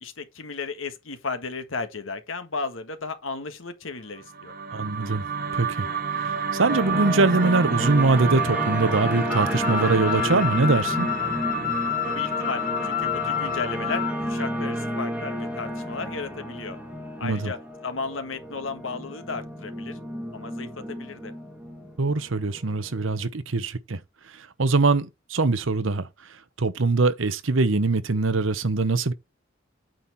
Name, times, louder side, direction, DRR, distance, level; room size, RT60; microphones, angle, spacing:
voice 1, 0.0-4.5 12.0-16.8 17.2-17.6 17.8-20.0 20.3-21.3, left 4 dB, 75° left, 1.6 m, -34 dB
sound 1, 4.2-14.5, right 6 dB, 50° right, 1.6 m, -31 dB
voice 2, 4.7-5.3 5.5-11.1 17.2-17.5 22.0-24.0 24.3-26.1 26.6-29.1, right 3 dB, 70° right, 0.9 m, -23 dB
sound 2, 6.7-23.0, equal, 10° right, 2.1 m, -32 dB
sound 3, 9.3-14.1, left 11 dB, 45° left, 0.9 m, -29 dB
9.1 x 4.2 x 4.6 m
head